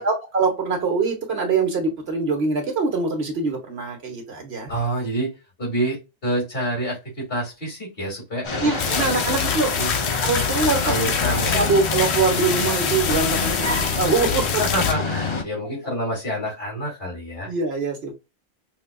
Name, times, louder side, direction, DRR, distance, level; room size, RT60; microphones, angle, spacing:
voice 1, 0.0-4.7 8.6-9.8 10.2-11.0 11.3-14.5 17.4-18.1, right 4 dB, 70° right, 2 dB, 1.4 m, -23 dB
voice 2, 4.7-5.3 5.6-9.9 10.8-11.7 14.6-17.5, right 1 dB, 60° left, -2 dB, 2.5 m, -28 dB
sound 1, 8.4-15.4, left 4 dB, 40° left, 0.5 m, -27 dB
sound 2, 8.8-14.9, left 7 dB, 80° left, 0.9 m, -25 dB
5.6 x 2.4 x 2.3 m, 0.26 s
omnidirectional pair, 1.1 m